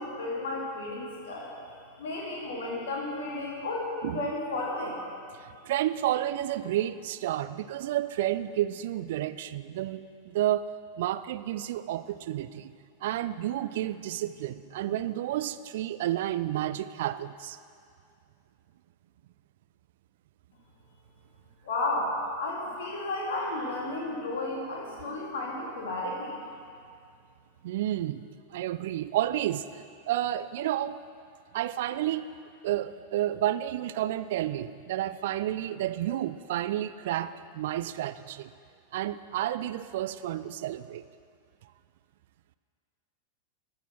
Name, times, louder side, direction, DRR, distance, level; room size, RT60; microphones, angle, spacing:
voice 1, 0.0-5.0 21.6-26.4, left 2 dB, 60° left, -3 dB, 2.3 m, -33 dB
voice 2, 5.6-10.7 11.0-12.7 13.0-17.6 27.6-31.0 31.5-32.3 32.6-38.5 38.9-41.0, right 13 dB, 55° right, 14 dB, 0.3 m, -31 dB
13.0 x 5.7 x 6.0 m, 2.3 s
figure-of-eight pair, 90°, 0 cm